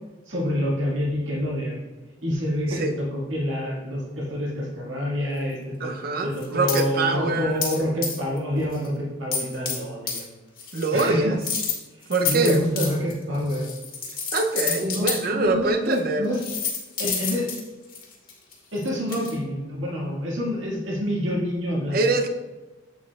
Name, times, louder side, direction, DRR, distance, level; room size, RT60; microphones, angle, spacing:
voice 1, 0.3-1.8 2.2-5.9 6.2-10.3 10.9-11.4 12.2-13.7 14.6-16.4 17.0-17.5 18.7-22.0, equal, 80° right, -3 dB, 1.8 m, -27 dB
voice 2, 5.8-7.6 10.7-11.4 12.1-12.6 14.3-16.3 21.9-22.3, right 3 dB, 50° right, 6 dB, 0.6 m, -24 dB
sound 1, 6.3-6.8 7.6-7.8 8.0-8.4 8.7-8.9 9.3-9.8 10.1-10.2 10.6-11.0 11.4-15.2 15.9-16.0 16.3-19.3, left 6 dB, 50° left, 1.6 m, -29 dB
7.8 x 7.1 x 2.3 m, 1.1 s
head